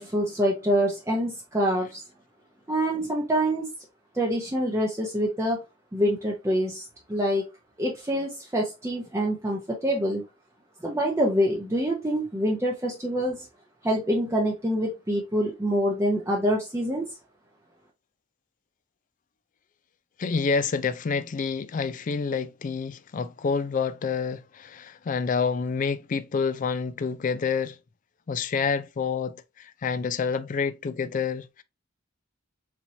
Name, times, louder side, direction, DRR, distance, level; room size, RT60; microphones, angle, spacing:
voice 1, 0.0-2.0 2.7-3.7 4.1-5.6 5.9-7.4 7.8-10.2 10.8-13.4 13.8-17.0, equal, 15° right, 0.6 m, -26 dB
voice 2, 20.2-27.8 28.3-31.6, left 5 dB, 40° left, 0.3 m, -28 dB
4.4 x 2.8 x 2.7 m
head